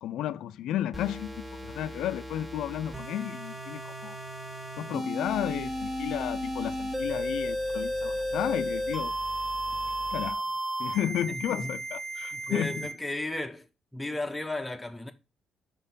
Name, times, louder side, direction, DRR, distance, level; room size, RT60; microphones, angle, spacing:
voice 1, 0.0-4.2 4.8-9.1 10.1-10.4 10.8-12.9, left 11 dB, 80° left, 0.4 m, -33 dB
sound 1, 0.9-12.9, right 1 dB, 25° right, 1.7 m, -34 dB
sound 2, 5.2-10.3, right 1 dB, 50° right, 0.9 m, -45 dB
voice 2, 11.1-11.7 12.3-13.7 13.9-15.1, left 2 dB, 10° left, 0.8 m, -34 dB
5.8 x 4.2 x 5.3 m
cardioid pair, 90°, 0 cm